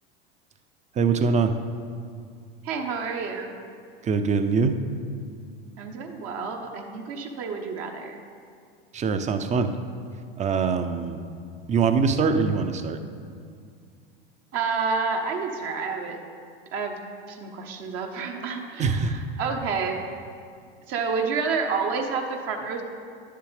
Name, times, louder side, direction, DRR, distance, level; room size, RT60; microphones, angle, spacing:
voice 1, 1.0-1.6 4.0-4.8 8.9-9.8 10.4-11.2 11.7-13.0 18.8-19.2, right 5 dB, 25° right, 9 dB, 0.5 m, -23 dB
voice 2, 2.6-3.6 5.8-8.2 14.5-16.2 16.7-17.0 17.3-20.0 20.9-22.8, right 5 dB, 50° right, 3 dB, 1.0 m, -29 dB
10.5 x 6.7 x 3.3 m, 2.2 s
hypercardioid pair, 85°, 30 cm